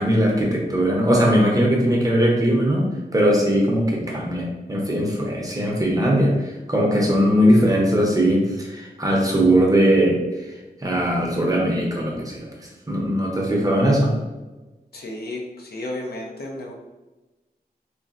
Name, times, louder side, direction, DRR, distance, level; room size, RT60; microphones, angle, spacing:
voice 1, 0.0-2.9 3.1-10.2 10.8-14.1, equal, 20° right, -2 dB, 0.6 m, -20 dB
voice 2, 14.9-16.7, left 1 dB, 75° left, 0 dB, 0.6 m, -33 dB
3.9 x 2.1 x 2.4 m, 1.1 s
wide cardioid pair, 110°, 16 cm